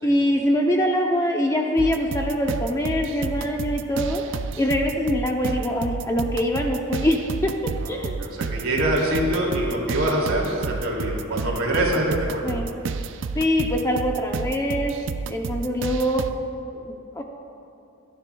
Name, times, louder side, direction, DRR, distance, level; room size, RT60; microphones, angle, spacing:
voice 1, 0.0-4.2 4.6-7.5 7.9-8.3 12.4-12.7 13.3-14.9 15.3-16.2 16.7-17.2, equal, 15° left, 2 dB, 0.6 m, -23 dB
sound 1, 1.8-16.3, right 4 dB, 60° right, 0.4 m, -31 dB
voice 2, 8.0-12.4, right 1 dB, 85° right, -2 dB, 2.5 m, -24 dB
24.5 x 10.0 x 2.3 m, 2.6 s
head